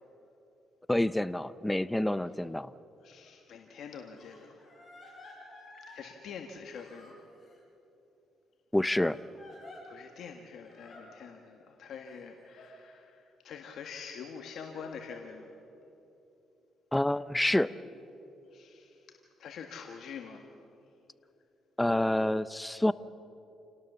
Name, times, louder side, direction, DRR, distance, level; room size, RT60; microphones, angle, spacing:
voice 1, 0.9-2.7 8.7-9.2 16.9-17.7 21.8-22.9, left 1 dB, 10° left, 16 dB, 0.6 m, -27 dB
voice 2, 3.0-4.6 5.8-7.2 9.8-15.6 18.5-19.0 19.4-20.5, left 6 dB, 70° left, 3 dB, 1.7 m, -45 dB
Crying sobbing, 3.2-3.3 4.2-6.0 6.7-7.6 9.0-9.8 10.6-11.0 12.1-12.7, left 2 dB, 25° left, 7.6 m, -52 dB
28.5 x 18.5 x 7.0 m, 2.9 s
cardioid pair, 90°, 0 cm